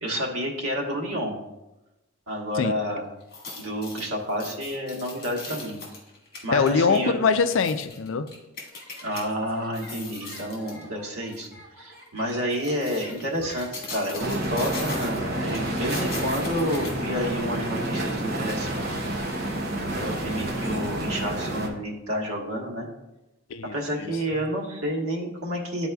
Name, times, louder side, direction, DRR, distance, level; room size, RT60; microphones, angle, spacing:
voice 1, 0.0-1.4 2.3-3.0 3.6-5.8 6.4-7.2 9.0-19.0 19.6-22.9 23.7-25.9, equal, 90° right, 1.4 m, -30 dB
sound 1, 3.2-9.2 9.6-10.8 11.3-11.5 12.3-17.4 17.8-17.9, left 2 dB, 45° left, 1.8 m, -39 dB
voice 2, 6.5-8.3 23.5-23.7, left 5 dB, 65° left, 0.4 m, -22 dB
sound 2, 8.7-21.5, equal, 10° right, 1.7 m, -48 dB
sound 3, 14.2-21.7, right 1 dB, 45° right, 0.9 m, -29 dB
11.0 x 4.2 x 2.3 m
head